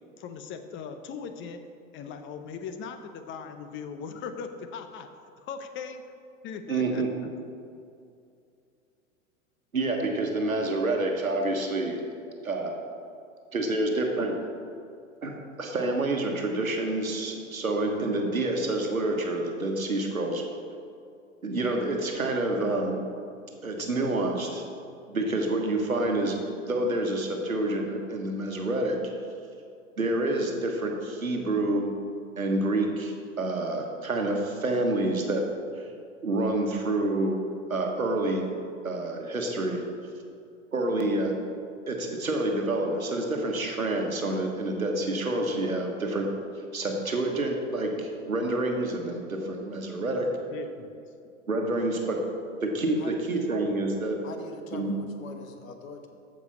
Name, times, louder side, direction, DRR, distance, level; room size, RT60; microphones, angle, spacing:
voice 1, 0.2-1.6 1.9-5.1 5.5-6.0 6.4-7.3 50.2-50.9, left 6 dB, 30° left, 8 dB, 0.8 m, -39 dB
voice 2, 6.7-7.1 9.7-12.0 12.4-12.8 13.5-14.4 15.2-20.4 21.4-23.0 23.6-24.6 25.1-26.4 26.7-29.0 30.0-31.9 32.4-35.5 36.2-37.4 37.7-38.5 38.8-39.8 40.7-41.4 41.9-46.3 46.7-50.3 51.5-52.2 52.6-54.2 54.7-54.9, right 2 dB, 90° right, 2 dB, 1.3 m, -28 dB
voice 3, 54.2-56.1, left 4 dB, 75° left, 6 dB, 1.2 m, -43 dB
14.5 x 5.3 x 4.2 m, 2.4 s
figure-of-eight pair, 90°, 40 cm